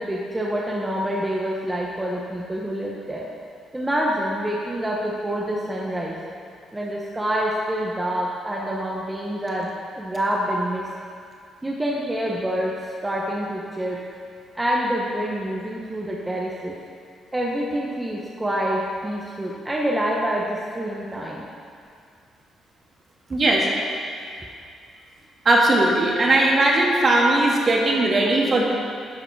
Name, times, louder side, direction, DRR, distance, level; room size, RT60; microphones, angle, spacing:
voice 1, 0.0-3.3 3.7-6.2 6.7-10.9 11.6-12.7 13.0-14.0 14.5-16.7 17.3-21.5, equal, 15° right, -3 dB, 1.0 m, -26 dB
voice 2, 23.3-23.7 25.5-28.6, right 2 dB, 40° right, -2 dB, 1.7 m, -18 dB
11.5 x 5.0 x 4.6 m, 2.3 s
cardioid pair, 90°, 0 cm